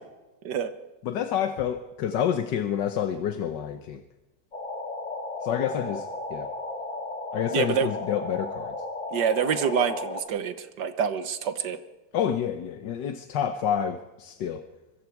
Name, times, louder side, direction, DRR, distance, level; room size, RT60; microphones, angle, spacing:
voice 1, 1.0-4.0 5.4-6.5 7.3-8.7 12.1-14.6, left 9 dB, 80° left, 8 dB, 1.6 m, -28 dB
sound 1, 4.5-10.2, left 2 dB, 45° left, 2.7 m, -35 dB
voice 2, 7.5-7.9 9.1-11.8, right 7 dB, 70° right, 10 dB, 1.8 m, -26 dB
25.0 x 23.0 x 4.7 m, 1.1 s
omnidirectional pair, 1.9 m